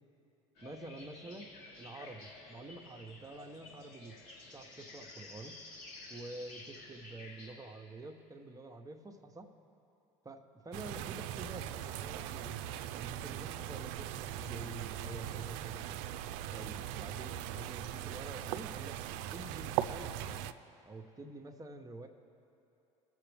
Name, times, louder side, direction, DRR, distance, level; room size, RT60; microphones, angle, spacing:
sound 1, 0.6-7.5, left 3 dB, 70° left, 2.7 m, -52 dB
voice 1, 0.6-1.5 1.8-4.2 4.5-5.6 6.1-9.5 10.2-12.6 12.9-16.0 16.5-20.4 20.9-22.1, right 2 dB, 20° right, 4 dB, 1.0 m, -48 dB
sound 2, 10.7-20.5, right 11 dB, 70° right, 0.4 m, -40 dB
20.0 x 7.1 x 3.4 m, 2.8 s
hypercardioid pair, 80°, 17 cm